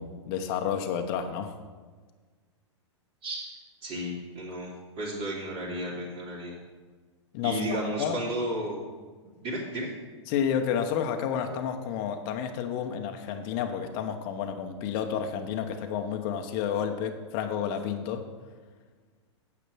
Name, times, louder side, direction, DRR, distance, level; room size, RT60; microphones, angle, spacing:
voice 1, 0.0-1.5 7.3-8.2 10.3-18.3, left 8 dB, 45° left, 5 dB, 1.0 m, -30 dB
voice 2, 3.8-4.7 5.0-6.6 7.4-8.8 9.4-9.9, right 1 dB, 40° right, -8 dB, 2.8 m, -33 dB
9.2 x 7.3 x 6.2 m, 1.4 s
hypercardioid pair, 105°, 15 cm